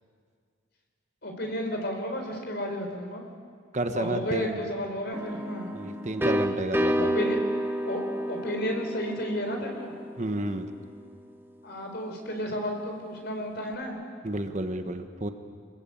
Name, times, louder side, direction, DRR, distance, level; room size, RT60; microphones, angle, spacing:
voice 1, 1.2-3.2 3.9-5.7 7.0-7.4 7.9-8.0 8.3-9.9 11.6-14.0, equal, 55° left, 3 dB, 4.7 m, -32 dB
voice 2, 3.7-4.6 5.7-7.1 10.2-10.7 14.2-15.3, right 1 dB, 35° right, 7 dB, 1.2 m, -31 dB
sound 1, 5.1-10.8, equal, 10° right, 1.2 m, -30 dB
27.0 x 21.0 x 8.7 m, 2.1 s
head